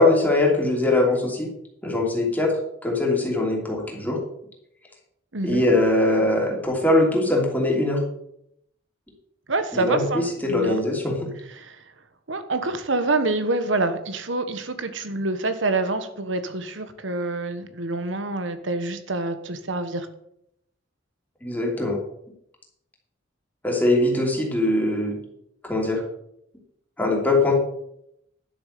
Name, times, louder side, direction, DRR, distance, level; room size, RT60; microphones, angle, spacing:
voice 1, 0.0-1.5 1.8-2.5 2.8-4.2 5.4-8.0 9.7-11.1 21.4-22.0 23.6-25.1 25.6-26.0 27.0-27.5, left 2 dB, 10° left, -2 dB, 3.0 m, -21 dB
voice 2, 5.3-5.6 9.5-10.8 11.6-11.8 12.3-20.1, right 2 dB, 70° right, 9 dB, 1.3 m, -26 dB
11.5 x 6.8 x 6.7 m, 0.75 s
head